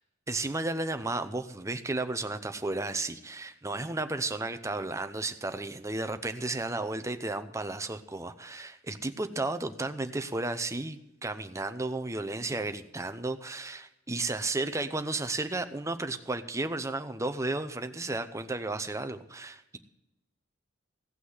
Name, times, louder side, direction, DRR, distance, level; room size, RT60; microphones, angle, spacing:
voice 1, 0.3-19.8, right 2 dB, 15° right, 9 dB, 0.7 m, -33 dB
16.5 x 6.1 x 7.9 m, 0.88 s
head